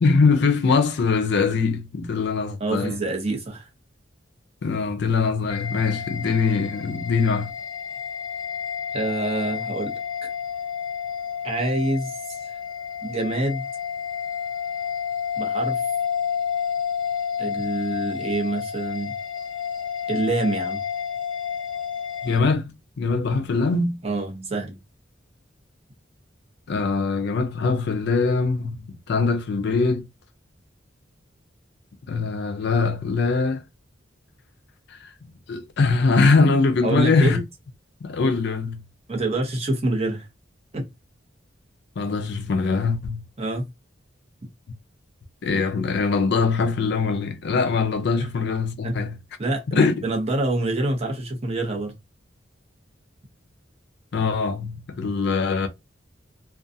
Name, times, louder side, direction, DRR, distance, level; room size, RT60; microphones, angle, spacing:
voice 1, 0.0-3.0 4.6-7.5 22.2-22.7 23.0-24.0 26.7-28.8 29.1-30.1 32.1-33.6 34.9-35.0 35.5-37.4 38.0-38.8 42.0-43.2 45.4-49.2 49.7-50.0 54.1-55.7, left 4 dB, 65° left, 0.4 m, -22 dB
voice 2, 2.6-3.7 8.9-10.0 11.4-12.4 13.0-13.7 15.4-15.8 17.4-19.1 20.1-20.8 24.0-24.8 36.8-37.4 39.1-40.3 40.7-40.8 43.4-43.6 48.8-49.0 49.4-51.9, right 2 dB, 35° right, 0.7 m, -26 dB
sound 1, 5.5-22.4, left 7 dB, 25° left, 0.7 m, -30 dB
2.4 x 2.2 x 2.6 m
head